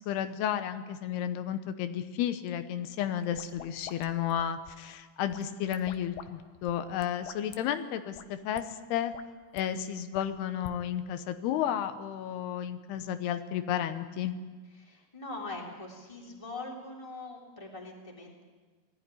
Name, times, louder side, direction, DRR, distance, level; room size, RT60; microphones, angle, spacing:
voice 1, 0.0-8.6 8.9-9.1 9.5-14.3, left 10 dB, 90° left, 9 dB, 3.0 m, -32 dB
sound 1, 3.2-4.9 5.3-6.3 6.5-7.6 8.1-8.3 8.5-8.6 9.0-9.6 10.1-10.8, left 10 dB, 70° left, 2.3 m, -47 dB
voice 2, 14.8-18.4, left 2 dB, 10° left, -1 dB, 2.9 m, -42 dB
19.5 x 14.5 x 10.0 m, 1.4 s
omnidirectional pair, 4.5 m